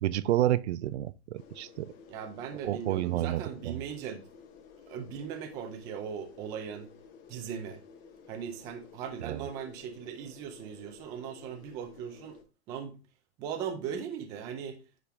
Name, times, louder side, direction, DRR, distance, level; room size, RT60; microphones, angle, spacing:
voice 1, 0.0-1.9 2.6-3.8 9.2-9.4, right 14 dB, 70° right, 0.6 m, -30 dB
sound 1, 1.4-12.4, left 6 dB, 25° left, 0.8 m, -53 dB
voice 2, 2.1-4.2 4.9-6.9 7.3-7.8 8.3-12.4 12.7-12.9 13.4-14.8, right 7 dB, 10° right, 0.3 m, -39 dB
10.0 x 3.7 x 3.4 m
supercardioid pair, 160°, 34 cm